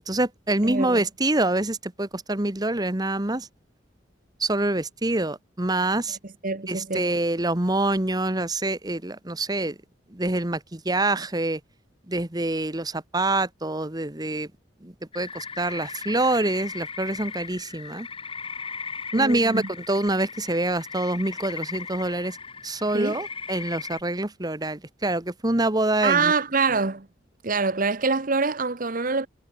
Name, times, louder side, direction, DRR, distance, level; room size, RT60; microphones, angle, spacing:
voice 1, 0.0-3.5 4.4-6.2 6.7-9.8 10.1-11.6 12.1-14.5 14.8-18.1 19.1-22.4 22.6-26.3, right 2 dB, 20° right, 1.3 m, -26 dB
voice 2, 0.6-1.0 6.4-7.1 19.1-19.7 22.9-23.2 26.0-27.1 27.4-29.3, right 4 dB, 45° right, 1.1 m, -25 dB
sound 1, 15.1-24.0, left 5 dB, 30° left, 4.3 m, -37 dB
head